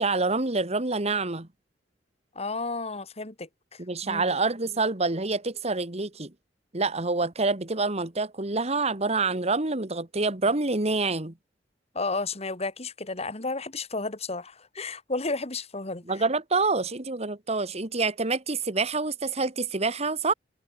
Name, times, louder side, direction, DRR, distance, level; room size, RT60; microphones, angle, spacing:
voice 1, 0.0-1.5 3.8-6.3 6.7-11.3 16.1-20.3, right 3 dB, 35° right, 2.0 m, -27 dB
voice 2, 2.4-4.3 11.9-16.2, left 3 dB, 35° left, 2.5 m, -33 dB
head